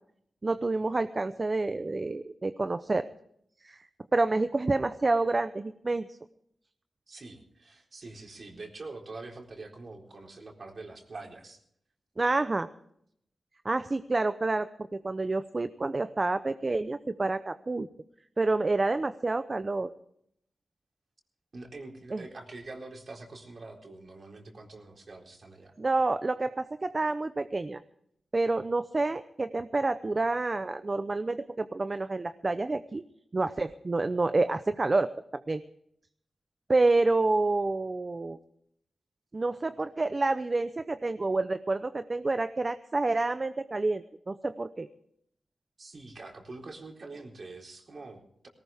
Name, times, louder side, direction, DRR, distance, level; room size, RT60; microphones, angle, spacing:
voice 1, 0.4-3.1 3.6-6.2 12.2-12.7 13.6-17.9 18.4-19.9 22.1-22.2 25.8-27.8 28.3-33.0 33.3-35.6 36.7-38.4 39.3-44.9, right 3 dB, 35° right, 10 dB, 0.7 m, -28 dB
voice 2, 7.1-11.6 21.5-25.7 45.8-48.5, right 3 dB, 55° right, 1 dB, 4.0 m, -45 dB
19.0 x 18.5 x 3.5 m, 0.70 s
wide cardioid pair, 80°, 0 cm